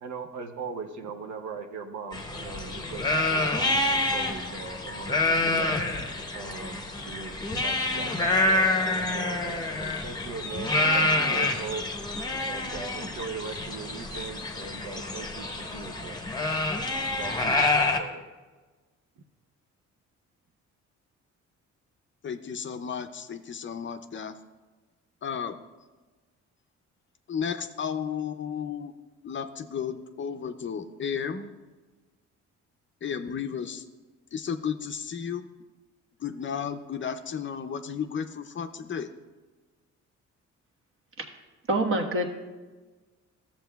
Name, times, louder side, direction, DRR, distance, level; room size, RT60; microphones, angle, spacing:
voice 1, 0.0-5.7 6.3-11.8 12.4-16.4 17.2-18.2, right 5 dB, 70° right, 6 dB, 0.7 m, -40 dB
sound 1, 2.1-18.0, left 2 dB, 15° left, 0.9 m, -27 dB
voice 2, 22.2-24.3 25.2-25.7 27.3-28.9 29.2-31.5 33.0-33.8 34.3-35.4 36.2-39.1, left 7 dB, 40° left, 8 dB, 0.5 m, -33 dB
voice 3, 41.7-42.3, right 1 dB, 45° right, 2 dB, 1.3 m, -25 dB
13.5 x 7.2 x 2.3 m, 1.3 s
cardioid pair, 90°, 30 cm